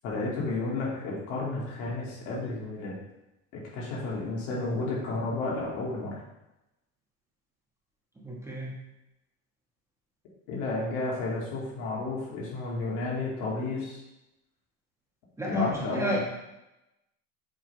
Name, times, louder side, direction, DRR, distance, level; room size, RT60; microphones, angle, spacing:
voice 1, 0.0-3.0 3.5-6.2 10.5-14.0 15.4-16.2, left 2 dB, 65° left, -4 dB, 2.4 m, -32 dB
voice 2, 8.2-8.8 15.4-16.2, left 1 dB, 10° right, -4 dB, 1.2 m, -31 dB
7.6 x 3.7 x 4.4 m, 0.93 s
cardioid pair, 150°, 35 cm